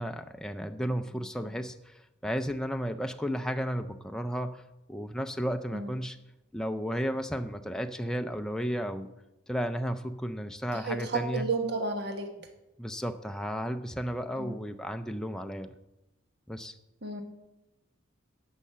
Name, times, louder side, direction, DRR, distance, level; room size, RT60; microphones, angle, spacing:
voice 1, 0.0-4.6 4.9-6.2 6.5-9.1 9.5-11.5 12.8-15.7 16.5-16.7, equal, 5° left, 6 dB, 0.4 m, -33 dB
voice 2, 10.7-12.3 14.3-14.6 17.0-17.2, right 3 dB, 55° right, 4 dB, 1.3 m, -32 dB
10.5 x 5.6 x 7.4 m, 0.96 s
head